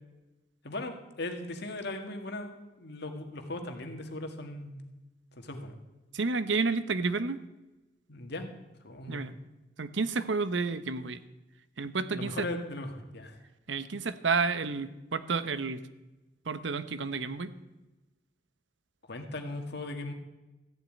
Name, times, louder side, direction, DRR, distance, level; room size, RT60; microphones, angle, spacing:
voice 1, 0.6-4.8 5.4-5.8 8.1-8.5 8.8-9.3 12.1-13.4 19.1-20.1, left 2 dB, 65° left, 5 dB, 1.8 m, -38 dB
voice 2, 6.1-7.4 9.1-9.4 9.8-11.2 11.8-12.5 13.7-15.8 16.5-17.5, right 4 dB, 80° right, 13 dB, 0.9 m, -30 dB
14.0 x 7.3 x 9.2 m, 1.0 s
head